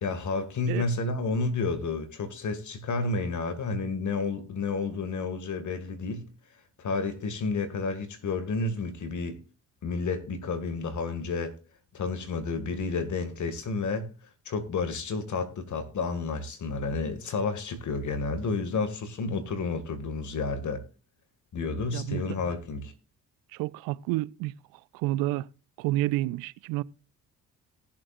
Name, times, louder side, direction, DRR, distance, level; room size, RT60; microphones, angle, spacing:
voice 1, 0.0-6.2 6.8-9.4 9.8-11.5 11.9-14.1 14.5-20.8 21.5-22.9, left 4 dB, 60° left, 2.1 m, -31 dB
voice 2, 21.9-22.2 23.5-24.5 24.9-25.5 25.8-26.8, right 17 dB, 85° right, 0.5 m, -29 dB
19.0 x 7.4 x 2.5 m
supercardioid pair, 55°, 34 cm